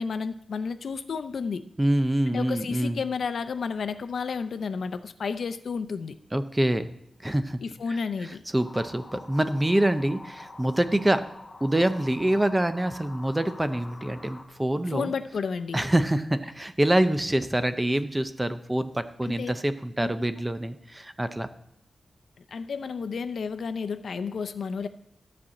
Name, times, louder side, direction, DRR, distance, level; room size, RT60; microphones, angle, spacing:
voice 1, 0.0-1.6 2.3-6.2 7.6-8.4 14.9-15.8 19.2-19.5 20.0-20.1 22.5-24.9, left 5 dB, 70° left, 11 dB, 0.5 m, -31 dB
voice 2, 1.8-3.0 6.3-6.9 7.2-7.6 7.9-11.2 11.6-15.1 15.7-21.5, right 1 dB, 10° right, 10 dB, 0.5 m, -26 dB
sound 1, 8.5-14.4, left 2 dB, 25° left, 1.4 m, -45 dB
12.5 x 4.3 x 7.5 m, 0.74 s
wide cardioid pair, 165°, 0 cm